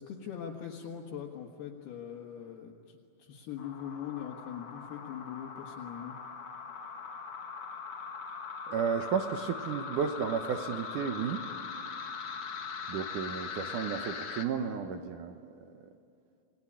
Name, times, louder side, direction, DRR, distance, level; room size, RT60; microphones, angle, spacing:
voice 1, 0.0-6.2, left 9 dB, 70° left, -1 dB, 3.5 m, -42 dB
sound 1, 3.6-14.5, left 5 dB, 50° left, 1.6 m, -41 dB
voice 2, 8.7-11.4 12.9-15.9, right 7 dB, 75° right, 6 dB, 1.9 m, -33 dB
28.0 x 20.0 x 9.9 m, 2.5 s
omnidirectional pair, 5.0 m